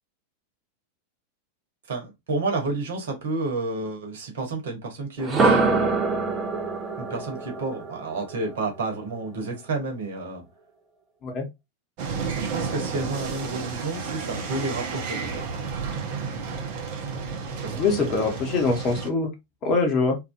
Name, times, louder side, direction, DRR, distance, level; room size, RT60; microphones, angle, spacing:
voice 1, 1.9-5.6 7.0-10.5 12.3-15.2 17.6-18.3, right 3 dB, 60° right, 1.1 m, -30 dB
sound 1, 5.2-9.2, right 3 dB, 20° right, 0.6 m, -25 dB
sound 2, 12.0-19.1, right 5 dB, 45° right, 0.8 m, -32 dB
voice 2, 17.8-19.3 19.6-20.2, left 4 dB, 35° left, 1.1 m, -23 dB
2.9 x 2.5 x 2.5 m
figure-of-eight pair, 90°, 0 cm